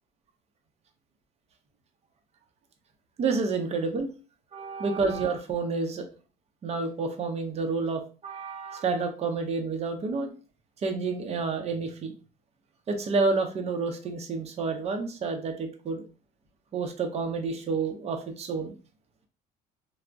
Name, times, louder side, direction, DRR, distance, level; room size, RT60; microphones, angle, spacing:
voice 1, 3.2-4.1 4.5-6.1 6.6-10.3 10.8-12.1 12.9-16.0 16.7-18.8, right 4 dB, 40° right, 5 dB, 0.6 m, -29 dB
3.4 x 2.0 x 2.4 m, 0.35 s
cardioid pair, 110°, 17 cm